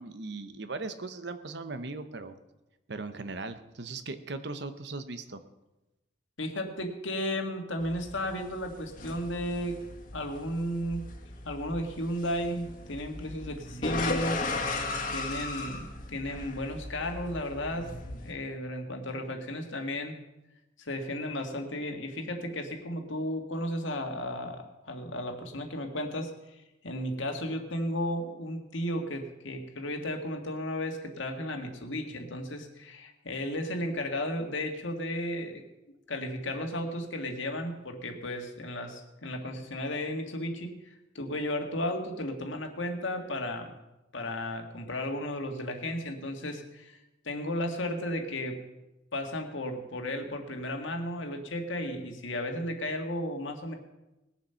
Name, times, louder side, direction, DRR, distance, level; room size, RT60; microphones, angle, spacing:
voice 1, 0.0-2.4 2.9-5.4, right 3 dB, 55° right, 10 dB, 0.9 m, -38 dB
voice 2, 6.4-9.8 10.1-11.0 11.4-14.8 15.1-20.2 20.8-35.6 36.1-43.7 44.1-47.0 47.2-48.6 49.1-53.7, left 1 dB, 70° left, 4 dB, 1.8 m, -34 dB
sound 1, 7.8-18.3, left 2 dB, 40° left, 1.8 m, -37 dB
19.5 x 7.3 x 5.7 m, 0.99 s
head